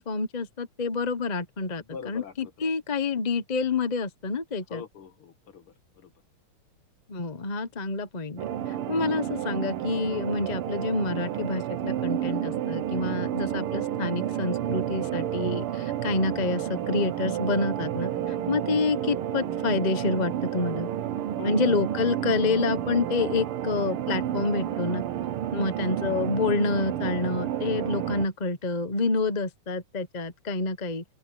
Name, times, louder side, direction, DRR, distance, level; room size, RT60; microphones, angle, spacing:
voice 1, 0.0-4.8 7.1-20.9 21.4-25.0 25.5-31.0, left 3 dB, 35° left, 0.7 m, -28 dB
voice 2, 1.8-2.7 4.7-6.1 21.4-21.7, left 6 dB, 75° left, 2.8 m, -43 dB
sound 1, 8.4-28.3, right 11 dB, 80° right, 1.9 m, -30 dB
open air
omnidirectional pair, 2.4 m